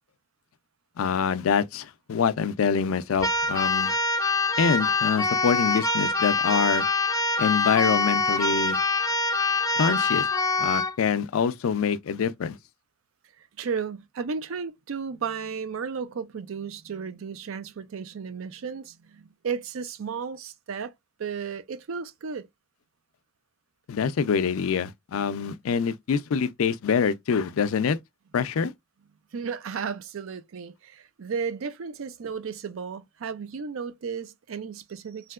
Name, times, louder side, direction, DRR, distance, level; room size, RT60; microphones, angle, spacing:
voice 1, 1.0-3.9 4.6-6.9 7.4-8.8 9.8-10.3 10.6-12.6 23.9-28.0 28.3-28.7, left 6 dB, 85° left, 0.4 m, -25 dB
Keyboard (musical), 3.2-11.0, left 3 dB, 15° left, 0.4 m, -25 dB
voice 2, 13.6-20.9 21.2-22.5 29.3-35.3, right 6 dB, 75° right, 0.4 m, -34 dB
3.2 x 2.8 x 2.2 m
head